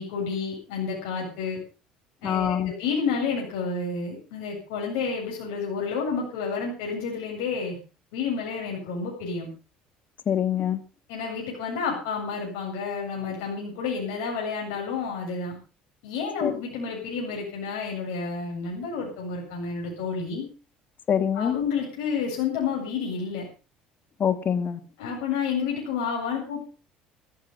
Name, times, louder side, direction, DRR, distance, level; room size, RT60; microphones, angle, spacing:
voice 1, 0.0-1.6 2.2-7.8 8.1-9.5 11.1-15.6 16.0-20.5 21.3-23.5 25.0-26.6, left 5 dB, 80° left, -2 dB, 7.9 m, -30 dB
voice 2, 2.2-2.7 10.3-10.8 16.4-16.5 21.1-21.6 24.2-24.8, left 8 dB, 45° left, 11 dB, 2.0 m, -24 dB
14.5 x 14.0 x 5.7 m, 0.36 s
supercardioid pair, 80°, 4 cm